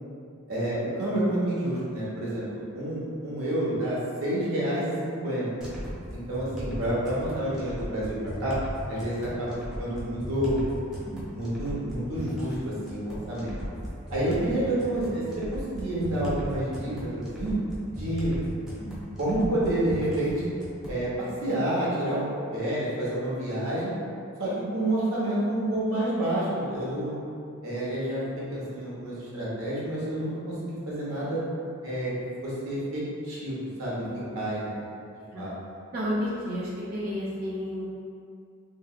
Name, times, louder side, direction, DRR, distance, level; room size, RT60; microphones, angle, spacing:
voice 1, 0.5-5.5 6.1-8.6 8.9-10.6 11.3-13.6 14.1-17.6 17.9-18.3 19.2-20.3 20.9-22.2 22.5-23.9 24.4-27.1 27.6-31.4 31.8-32.1 32.4-34.0 34.3-34.7 35.4-35.5, right 1 dB, 80° right, -8 dB, 0.9 m, -29 dB
sound 1, 5.6-21.0, equal, 5° right, 0.6 m, -37 dB
voice 2, 34.0-34.3 35.3-35.5 35.9-37.9, equal, 45° right, -8 dB, 0.5 m, -31 dB
3.1 x 2.9 x 2.4 m, 2.5 s
head